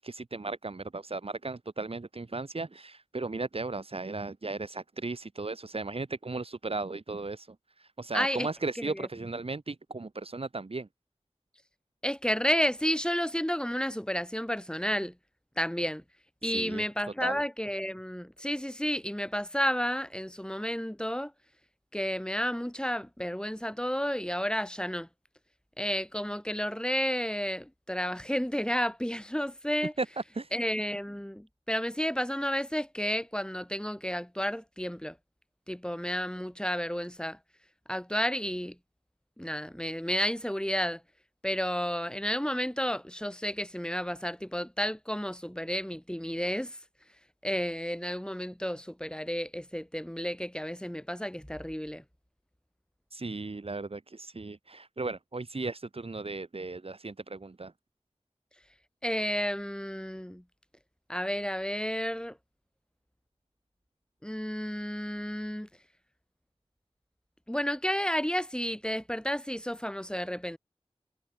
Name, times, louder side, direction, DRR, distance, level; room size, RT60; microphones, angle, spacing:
voice 1, 0.0-10.9 16.4-16.8 17.2-17.4 30.0-30.5 53.1-57.7, right 3 dB, 65° right, 2.0 m, -36 dB
voice 2, 8.1-8.5 8.8-9.1 12.0-15.1 15.6-16.0 16.4-21.3 21.9-25.1 25.8-29.9 30.5-35.2 35.7-37.4 37.9-38.8 39.4-41.0 41.4-46.8 47.4-52.0 59.0-60.4 61.1-62.4 64.2-65.7 67.5-70.6, equal, 10° left, 4.5 m, -31 dB
wide cardioid pair, 40°, 10 cm